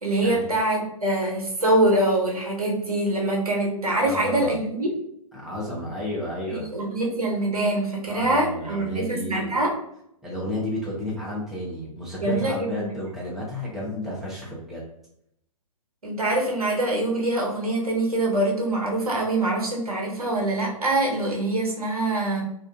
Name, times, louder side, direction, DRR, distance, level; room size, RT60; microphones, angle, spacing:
voice 1, 0.0-5.0 6.5-9.7 12.2-13.0 16.0-22.4, right 1 dB, 80° right, -1 dB, 0.8 m, -24 dB
voice 2, 4.0-4.6 5.3-6.7 8.1-9.6 10.2-14.9, left 1 dB, ahead, -6 dB, 0.5 m, -32 dB
2.5 x 2.3 x 2.3 m, 0.75 s
figure-of-eight pair, 120°, 19 cm